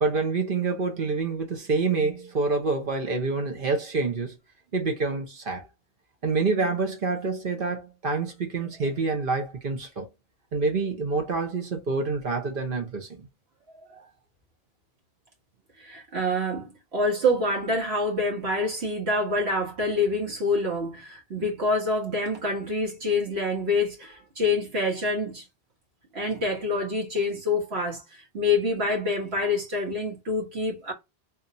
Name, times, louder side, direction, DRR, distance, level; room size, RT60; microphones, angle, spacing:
voice 1, 0.0-4.3 4.7-5.6 6.2-10.1 10.5-13.3, right 3 dB, 55° right, 1.1 m, -27 dB
voice 2, 15.8-25.4 26.1-30.9, left 2 dB, 80° right, 1.7 m, -26 dB
3.8 x 2.7 x 2.6 m
omnidirectional pair, 1.1 m